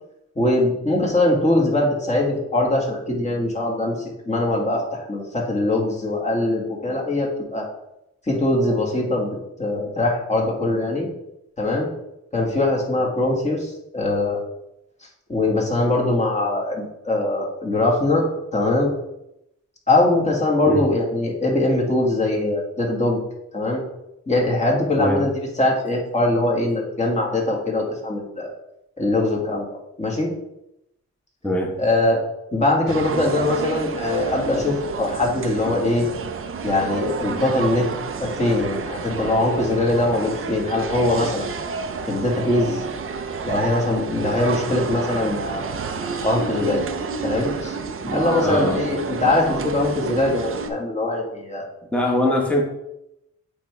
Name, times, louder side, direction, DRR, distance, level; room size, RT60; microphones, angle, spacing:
voice 1, 0.4-7.7 8.3-11.1 11.6-11.9 12.3-14.4 15.3-18.3 18.5-18.9 19.9-23.2 23.5-23.8 24.3-28.5 29.0-29.6 30.0-30.3 31.8-32.2 32.5-36.1 36.6-37.9 38.2-41.5 42.1-42.8 43.4-45.7 46.2-46.8 47.2-47.8 48.0-51.6, left 2 dB, 25° left, -2 dB, 1.8 m, -22 dB
voice 2, 31.4-31.7 48.1-48.8 51.9-52.6, equal, 5° left, 0 dB, 1.2 m, -22 dB
sound 1, 32.9-50.7, right 5 dB, 45° right, 0.6 m, -30 dB
8.4 x 3.6 x 3.3 m, 0.84 s
cardioid pair, 95°, 29 cm